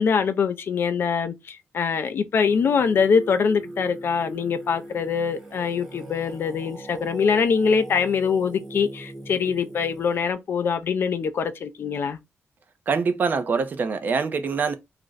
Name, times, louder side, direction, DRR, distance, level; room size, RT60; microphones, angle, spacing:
voice 1, 0.0-12.2, left 6 dB, 50° left, 0.3 m, -23 dB
Singing, 2.4-10.3, right 1 dB, 5° right, 0.7 m, -40 dB
voice 2, 12.9-14.7, right 5 dB, 40° right, 0.4 m, -24 dB
2.4 x 2.0 x 3.8 m
wide cardioid pair, 160°, 5 cm